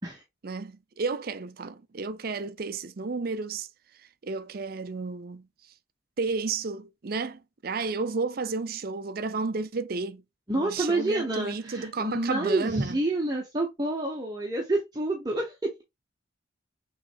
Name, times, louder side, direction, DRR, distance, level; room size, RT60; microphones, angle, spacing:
voice 1, 0.4-3.7 3.9-5.7 6.2-10.2 10.5-13.0, right 4 dB, 50° right, 0.5 m, -32 dB
voice 2, 10.5-15.8, right 2 dB, 20° right, 0.9 m, -28 dB
6.0 x 3.2 x 2.4 m
head